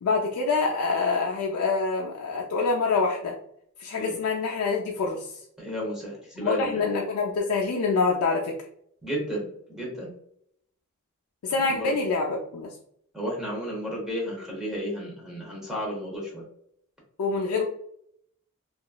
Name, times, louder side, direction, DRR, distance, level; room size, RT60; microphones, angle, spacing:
voice 1, 0.0-3.3 3.8-5.3 6.4-8.6 11.4-12.7 17.2-17.6, left 4 dB, 80° left, -1 dB, 0.4 m, -26 dB
voice 2, 5.6-6.9 9.0-10.1 11.7-11.9 13.1-16.4, equal, ahead, -4 dB, 0.7 m, -32 dB
2.9 x 2.3 x 2.2 m, 0.70 s
head